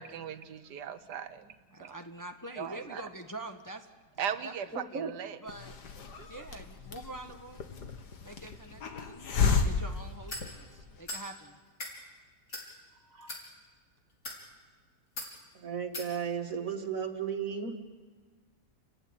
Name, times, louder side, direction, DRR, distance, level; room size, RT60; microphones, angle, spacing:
voice 1, 0.0-1.5 1.8-1.9 2.6-3.0 4.2-5.4 6.2-6.3, right 8 dB, 90° right, 11 dB, 1.6 m, -38 dB
voice 2, 1.7-3.9 4.2-4.5 5.4-5.7 6.3-7.8 8.2-11.6, right 1 dB, 15° left, 5 dB, 1.1 m, -45 dB
voice 3, 4.7-5.1 13.1-13.4 15.5-17.8, right 6 dB, 55° right, 5 dB, 2.3 m, -35 dB
Hiss, 5.5-11.0, left 5 dB, 90° left, 2.2 m, -33 dB
sound 1, 10.3-10.5 11.1-11.3 11.7-11.9 12.5-12.7 13.2-13.4 14.1-14.4 15.2-15.3 15.9-16.1, left 1 dB, 60° left, 5.0 m, -39 dB
30.0 x 15.5 x 9.6 m, 1.4 s
omnidirectional pair, 1.7 m